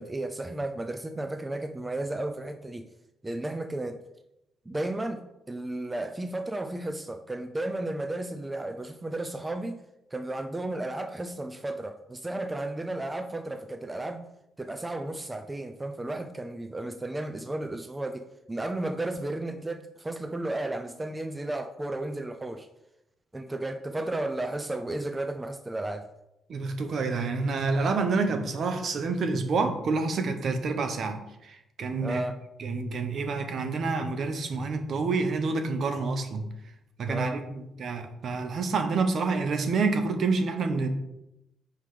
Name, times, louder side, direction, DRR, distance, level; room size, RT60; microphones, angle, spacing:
voice 1, 0.0-2.9 3.2-4.0 4.7-9.8 10.1-14.3 14.6-22.7 23.3-26.1 32.0-32.4 37.1-37.4, right 2 dB, 15° right, 7 dB, 0.5 m, -33 dB
voice 2, 26.5-32.2 32.6-36.5 37.0-40.9, right 4 dB, 60° right, 7 dB, 1.0 m, -28 dB
5.9 x 5.1 x 4.9 m, 0.87 s
cardioid pair, 90°, 0 cm